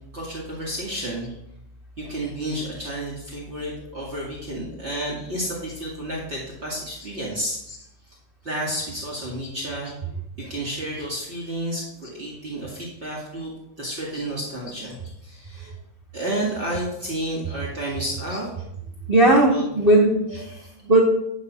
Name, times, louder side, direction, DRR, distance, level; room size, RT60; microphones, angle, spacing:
voice 1, 0.1-1.3 2.0-7.6 8.1-8.2 8.4-9.9 10.4-13.5 13.8-15.0 15.2-15.7 16.1-18.5 19.5-19.9 20.4-20.7, right 1 dB, 25° right, -4 dB, 1.8 m, -31 dB
voice 2, 19.1-20.5 20.9-21.0, right 1 dB, 60° right, -2 dB, 0.5 m, -17 dB
11.5 x 4.0 x 6.2 m, 0.80 s
omnidirectional pair, 3.5 m